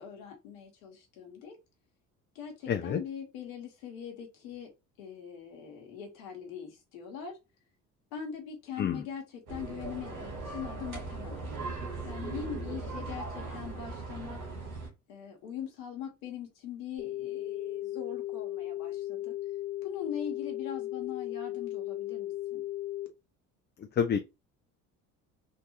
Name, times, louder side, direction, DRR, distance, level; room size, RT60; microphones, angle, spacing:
voice 1, 0.0-1.6 2.3-4.7 5.0-7.4 8.1-11.5 12.0-14.4 15.1-19.3 19.8-22.6, left 8 dB, 75° left, 1.4 m, -42 dB
voice 2, 2.7-3.0 8.8-9.0 24.0-24.2, left 7 dB, 25° left, 0.4 m, -27 dB
sound 1, 9.5-14.9, right 3 dB, 80° right, 1.4 m, -39 dB
sound 2, 17.0-23.1, left 14 dB, 40° left, 1.2 m, -36 dB
3.7 x 2.6 x 2.9 m
hypercardioid pair, 55°, 42 cm